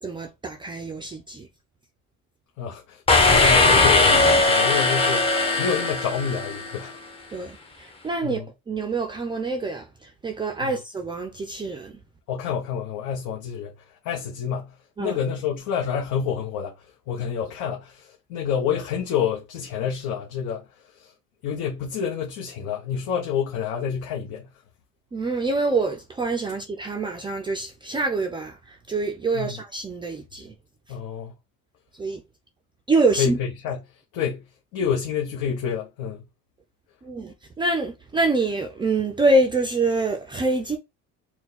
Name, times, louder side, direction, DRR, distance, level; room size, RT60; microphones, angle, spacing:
voice 1, 0.0-1.5 7.3-11.9 15.0-15.2 25.1-30.5 32.0-32.2 32.9-33.4 37.0-40.8, right 2 dB, 15° right, 0.4 m, -26 dB
voice 2, 2.6-6.9 8.2-8.5 12.3-13.7 14.0-20.6 21.0-21.1 21.4-24.5 29.3-29.5 30.9-31.3 33.2-33.8 34.1-34.5 34.7-36.2, left 7 dB, 70° left, 1.0 m, -28 dB
sound 1, 3.1-6.8, left 3 dB, 20° left, 0.8 m, -19 dB
4.4 x 2.2 x 4.0 m
cardioid pair, 160°, 32 cm